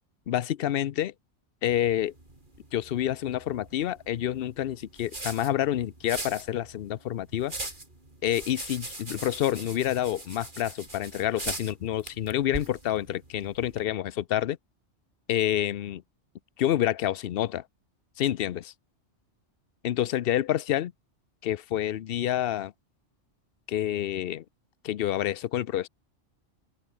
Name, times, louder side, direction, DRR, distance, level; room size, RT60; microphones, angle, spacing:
voice 1, 0.3-1.1 1.6-2.1 2.7-7.5 8.2-14.6 15.3-16.0 16.6-17.6 18.2-18.7 19.8-20.9 21.4-22.7 23.7-24.4 24.8-25.9, left 12 dB, 60° left, 0.8 m, -28 dB
sound 1, 1.7-13.8, right 2 dB, 40° right, 4.3 m, -41 dB
omnidirectional pair, 1.2 m